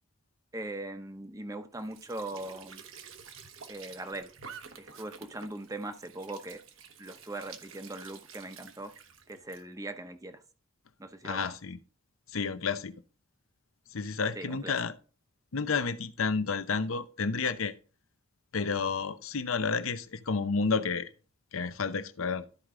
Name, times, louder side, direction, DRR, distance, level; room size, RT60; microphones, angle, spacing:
voice 1, 0.5-2.8 3.7-4.3 4.8-6.6 7.0-8.9 9.3-10.4 11.0-11.5 14.3-14.7, right 2 dB, 15° right, 0.8 m, -40 dB
Squeak / Sink (filling or washing) / Trickle dribble, 1.7-9.6, right 6 dB, 70° right, 1.1 m, -50 dB
voice 2, 11.2-11.8 12.3-12.9 13.9-14.9 15.5-17.7 18.5-21.1 21.5-22.5, left 5 dB, 80° left, 0.7 m, -30 dB
13.0 x 4.8 x 3.8 m
head